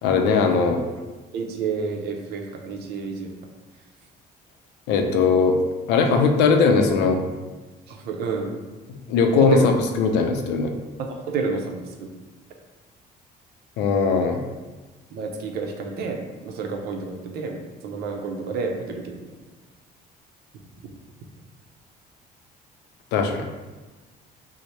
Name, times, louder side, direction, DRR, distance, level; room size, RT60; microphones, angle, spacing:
voice 1, 0.0-0.8 4.9-5.6 5.9-7.2 9.1-10.7 13.8-14.4 23.1-23.4, left 5 dB, 85° left, 4 dB, 0.5 m, -19 dB
voice 2, 1.3-3.3 7.9-8.5 9.4-9.7 11.0-12.1 15.1-17.6 17.8-19.2, right 4 dB, 70° right, 3 dB, 0.6 m, -29 dB
3.1 x 2.0 x 4.1 m, 1.2 s
cardioid pair, 110°, 17 cm